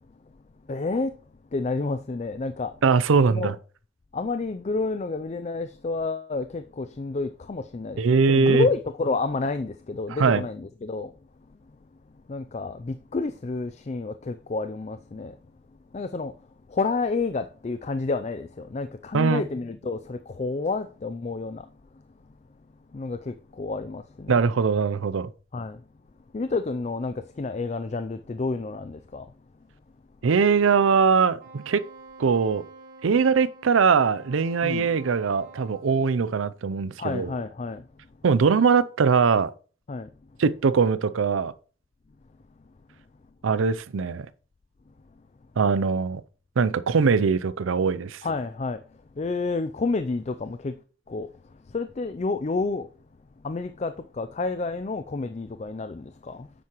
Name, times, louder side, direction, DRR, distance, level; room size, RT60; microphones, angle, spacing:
voice 1, 0.6-1.1 1.5-2.8 3.3-3.5 4.1-11.1 11.5-11.8 12.3-15.4 15.9-22.0 22.9-24.4 25.5-25.8 26.3-29.3 34.6-34.9 37.0-37.9 39.9-40.1 48.2-50.8 51.1-52.9 53.4-56.5, left 3 dB, 35° left, 0.4 m, -30 dB
voice 2, 2.8-3.5 8.0-8.7 10.2-10.4 19.1-19.4 24.3-25.3 30.2-31.8 32.2-32.6 33.0-37.3 38.2-39.5 40.4-41.5 43.4-44.3 45.6-46.2 46.6-48.2, right 5 dB, 80° right, 0.5 m, -21 dB
Wind instrument woodwind instrument, 31.4-35.9, right 2 dB, 40° right, 1.7 m, -47 dB
9.4 x 7.6 x 3.0 m
head